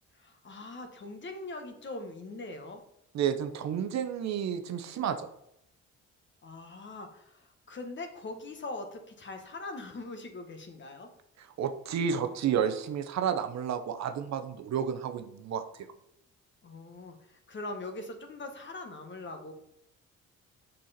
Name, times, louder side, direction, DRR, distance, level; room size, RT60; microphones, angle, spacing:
voice 1, 0.2-2.8 6.4-11.1 16.6-19.5, left 2 dB, 40° left, 6 dB, 1.2 m, -42 dB
voice 2, 3.1-5.3 11.4-15.6, right 8 dB, 65° right, 9 dB, 0.7 m, -31 dB
6.5 x 5.6 x 4.2 m, 0.79 s
cardioid pair, 90°, 30 cm